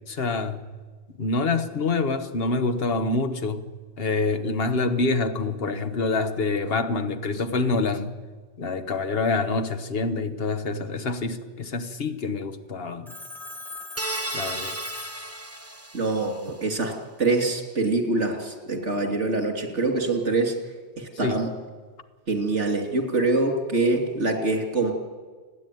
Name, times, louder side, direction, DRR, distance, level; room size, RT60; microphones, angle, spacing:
voice 1, 0.1-0.6 1.2-3.6 4.0-8.1 8.6-13.1 14.3-14.8 21.2-21.5, left 3 dB, 60° left, 1.4 m, -26 dB
Telephone, 13.1-15.9, left 2 dB, ahead, 1.5 m, -40 dB
sound 1, 14.0-16.4, right 1 dB, 15° right, 0.9 m, -34 dB
voice 2, 15.9-16.9 17.2-20.5 21.0-21.5 22.3-24.9, right 2 dB, 85° right, 3.2 m, -24 dB
29.0 x 10.0 x 9.3 m
omnidirectional pair, 1.2 m